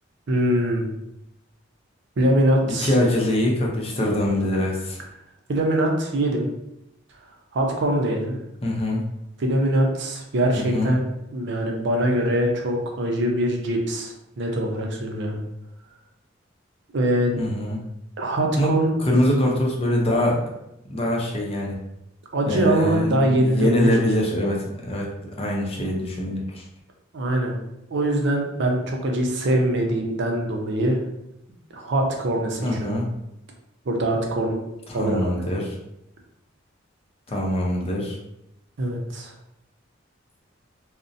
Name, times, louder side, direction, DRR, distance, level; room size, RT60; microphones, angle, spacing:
voice 1, 0.3-0.9 2.2-3.0 5.5-6.5 7.5-8.3 9.4-11.0 11.3-15.4 16.9-17.4 18.2-18.9 22.3-23.9 27.1-27.6 27.9-31.0 31.7-32.9 33.9-34.6 34.9-35.3 38.8-39.3, right 1 dB, 65° right, 1 dB, 0.5 m, -23 dB
voice 2, 2.7-5.0 8.6-9.0 10.6-10.9 17.4-17.8 18.6-18.7 19.0-20.4 20.9-21.8 22.5-25.1 25.4-26.6 32.6-33.1 34.9-35.8 37.3-38.2, left 1 dB, 30° left, -1 dB, 0.5 m, -23 dB
2.5 x 2.0 x 2.5 m, 0.85 s
head